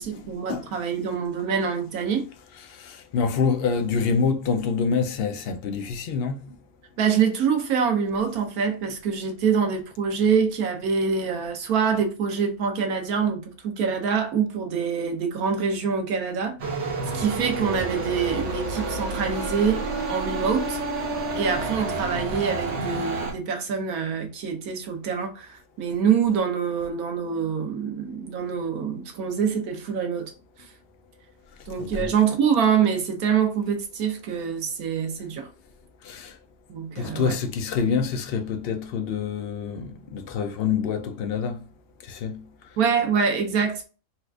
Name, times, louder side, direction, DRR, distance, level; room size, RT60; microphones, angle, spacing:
voice 1, 0.0-2.3 7.0-16.6 16.8-19.8 20.1-20.8 21.3-30.3 31.7-35.5 36.7-37.4 42.8-43.9, right 6 dB, 90° right, 1.3 m, -25 dB
voice 2, 2.7-6.5 31.9-32.1 36.0-36.4 37.0-41.7 42.0-42.5, left 5 dB, 65° left, 0.6 m, -26 dB
sound 1, 16.6-23.3, right 3 dB, 60° right, 1.1 m, -29 dB
4.2 x 2.4 x 2.3 m
omnidirectional pair, 1.5 m